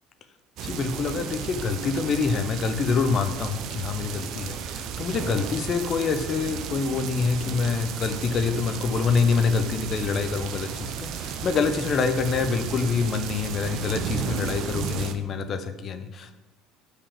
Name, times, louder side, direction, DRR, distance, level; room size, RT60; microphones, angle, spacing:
voice 1, 0.6-16.4, left 5 dB, 40° left, 8 dB, 0.8 m, -26 dB
sound 1, 0.6-15.1, right 7 dB, 55° right, 0.7 m, -33 dB
5.7 x 4.9 x 6.7 m, 1.1 s
figure-of-eight pair, 65°, 0 cm